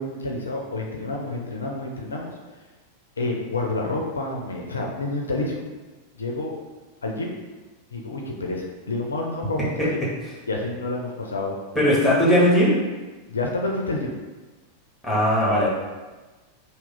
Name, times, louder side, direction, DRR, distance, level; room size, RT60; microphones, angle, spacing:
voice 1, 0.0-2.3 3.2-5.6 6.1-6.5 7.0-7.3 7.9-10.0 10.5-11.6 13.3-14.1, left 2 dB, 75° left, 0 dB, 0.4 m, -28 dB
voice 2, 11.7-12.7 15.0-15.7, equal, 5° right, -7 dB, 1.2 m, -18 dB
2.9 x 2.1 x 3.7 m, 1.3 s
figure-of-eight pair, 90°, 0 cm